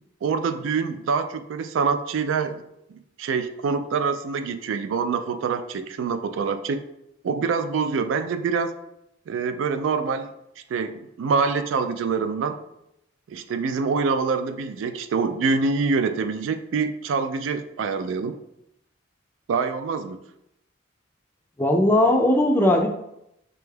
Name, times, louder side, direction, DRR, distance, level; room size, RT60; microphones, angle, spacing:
voice 1, 0.2-2.6 3.2-6.8 7.2-8.7 9.3-10.3 10.7-12.6 13.3-18.4 19.5-20.2, right 5 dB, 90° right, 10 dB, 0.3 m, -25 dB
voice 2, 21.6-22.9, left 1 dB, 10° left, 2 dB, 0.3 m, -18 dB
5.1 x 2.3 x 3.3 m, 0.82 s
head